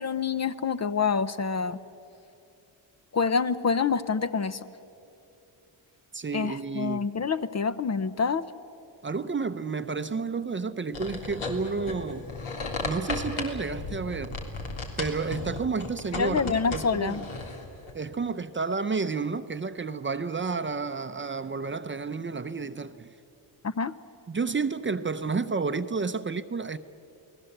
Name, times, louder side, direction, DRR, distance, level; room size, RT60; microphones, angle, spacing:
voice 1, 0.0-1.8 3.1-4.7 6.3-8.5 16.1-17.2 23.6-23.9, left 5 dB, 35° left, 0.7 m, -27 dB
voice 2, 6.1-7.1 9.0-12.3 12.8-14.4 15.0-17.2 17.9-23.1 24.3-26.8, right 4 dB, 25° right, 0.7 m, -31 dB
sound 1, 10.9-17.9, left 3 dB, 80° left, 3.5 m, -35 dB
29.0 x 19.5 x 8.0 m
cardioid pair, 115°, 47 cm